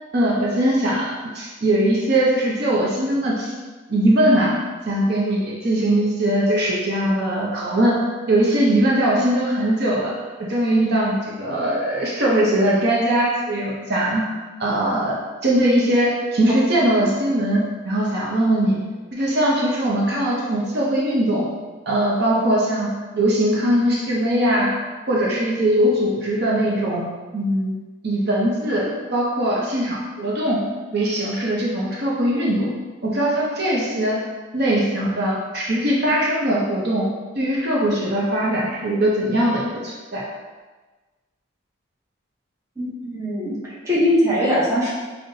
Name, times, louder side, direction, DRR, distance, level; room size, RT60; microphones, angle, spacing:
voice 1, 0.1-3.5 3.9-4.5 4.9-8.0 8.3-10.1 10.4-14.2 14.6-18.8 19.1-21.5 21.9-24.8 25.1-27.7 28.0-30.6 30.9-32.7 33.0-34.2 34.5-37.1 37.3-40.2, right 1 dB, 50° right, -4 dB, 0.6 m, -21 dB
voice 2, 42.8-44.9, left 1 dB, 15° right, -8 dB, 0.7 m, -21 dB
5.5 x 2.1 x 2.6 m, 1.3 s
head